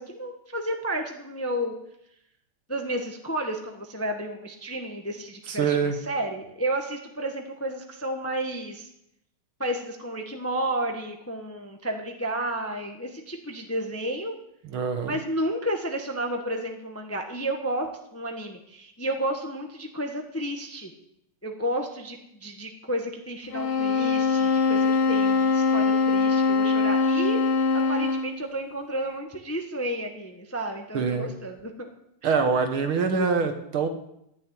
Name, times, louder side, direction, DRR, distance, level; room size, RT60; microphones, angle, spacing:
voice 1, 0.0-1.7 2.7-8.9 9.6-14.3 15.0-20.9 21.4-27.4 27.7-31.9, right 1 dB, 10° left, 4 dB, 0.9 m, -31 dB
voice 2, 5.5-6.0 14.6-15.1 30.9-31.3 32.2-33.9, right 5 dB, 70° right, 6 dB, 2.3 m, -24 dB
sound 1, 23.5-28.4, left 4 dB, 85° left, 2.2 m, -22 dB
13.5 x 6.8 x 9.3 m, 0.79 s
omnidirectional pair, 2.4 m